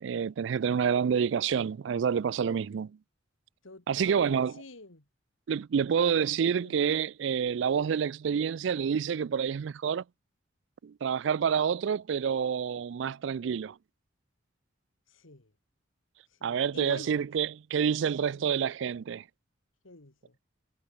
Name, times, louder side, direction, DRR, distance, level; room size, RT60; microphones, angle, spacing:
voice 1, 0.0-2.9 3.9-4.6 5.5-10.0 10.8-13.8 16.4-19.2, right 7 dB, 65° right, 0.3 m, -28 dB
voice 2, 3.6-5.0 6.4-6.9 15.1-15.5 16.3-17.1 18.2-18.5 19.8-20.4, left 2 dB, 90° left, 2.4 m, -47 dB
head